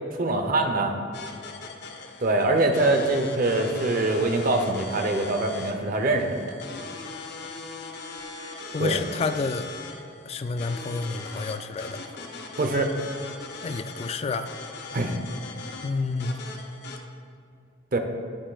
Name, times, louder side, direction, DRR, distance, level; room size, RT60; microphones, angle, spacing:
voice 1, 0.1-0.9 2.2-6.6 8.8-9.0 12.6-12.9 14.9-15.1 17.9-18.0, right 2 dB, 50° right, 5 dB, 0.7 m, -24 dB
sound 1, 1.1-17.0, left 3 dB, 60° left, 0.7 m, -40 dB
voice 2, 8.7-9.7 10.3-12.0 13.6-14.5 15.8-16.3, left 4 dB, 35° left, 10 dB, 0.3 m, -29 dB
10.0 x 8.6 x 2.3 m, 2.4 s
head